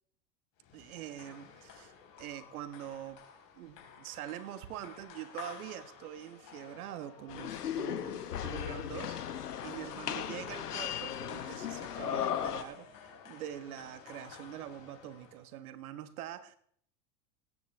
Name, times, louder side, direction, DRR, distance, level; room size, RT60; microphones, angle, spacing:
sound 1, 0.6-15.5, left 6 dB, 45° left, 4.4 m, -52 dB
voice 1, 0.7-3.2 3.6-16.6, right 11 dB, 70° right, 1.3 m, -44 dB
sound 2, 7.3-12.6, left 9 dB, 90° left, 1.1 m, -36 dB
20.5 x 10.0 x 3.3 m
hypercardioid pair, 90°, 45 cm